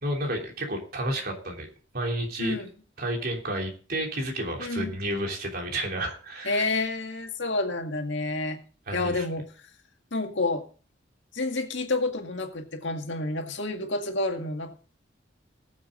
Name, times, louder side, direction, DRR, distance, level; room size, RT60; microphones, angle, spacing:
voice 1, 0.0-1.7 1.9-2.5 3.0-6.8 8.9-9.2, right 1 dB, 50° right, 1 dB, 3.3 m, -31 dB
voice 2, 2.4-2.7 4.6-5.0 6.5-8.6 8.9-9.5 10.1-10.6 11.3-14.7, left 2 dB, 70° left, 4 dB, 2.0 m, -29 dB
19.5 x 7.5 x 3.8 m, 0.40 s
head